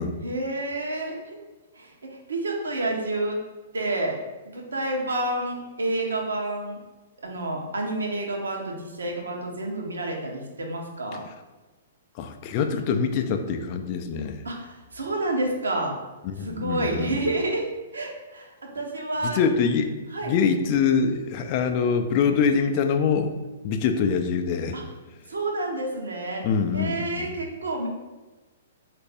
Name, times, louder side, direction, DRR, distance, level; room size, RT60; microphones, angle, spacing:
voice 1, 0.2-1.4 1.8-3.4 3.7-4.2 4.5-6.8 7.2-11.2 14.4-15.9 16.4-17.7 17.9-19.4 20.1-20.3 24.7-24.8 25.3-26.5 26.7-27.9, right 2 dB, 70° right, 0 dB, 0.8 m, -29 dB
voice 2, 12.2-14.4 16.2-17.2 19.2-19.9 20.2-23.3 23.6-24.8 26.4-27.4, left 6 dB, 35° left, 6 dB, 0.3 m, -24 dB
4.0 x 2.5 x 3.4 m, 1.2 s
figure-of-eight pair, 115°, 0 cm